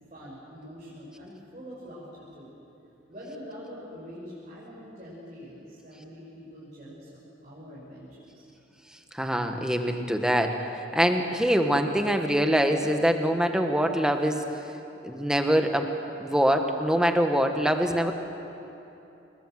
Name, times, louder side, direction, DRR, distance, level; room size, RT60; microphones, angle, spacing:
voice 1, 0.1-2.5 3.1-8.4, equal, 35° right, -8 dB, 6.1 m, -44 dB
voice 2, 9.1-14.5 15.0-15.9 16.2-18.1, equal, 5° right, 5 dB, 1.4 m, -24 dB
27.5 x 21.5 x 7.7 m, 2.9 s
head